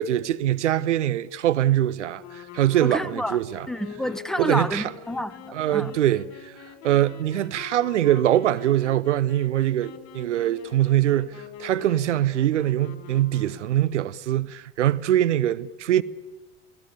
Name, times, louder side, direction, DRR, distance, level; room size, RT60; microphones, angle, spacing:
voice 1, 0.0-3.7 4.4-4.9 5.5-6.6 6.8-16.0, right 12 dB, 70° right, 0.8 m, -23 dB
sound 1, 2.2-14.0, left 9 dB, 45° left, 3.2 m, -44 dB
voice 2, 2.8-3.4 3.7-5.9, equal, ahead, 1.2 m, -29 dB
29.5 x 18.5 x 8.1 m
figure-of-eight pair, 70°, 37 cm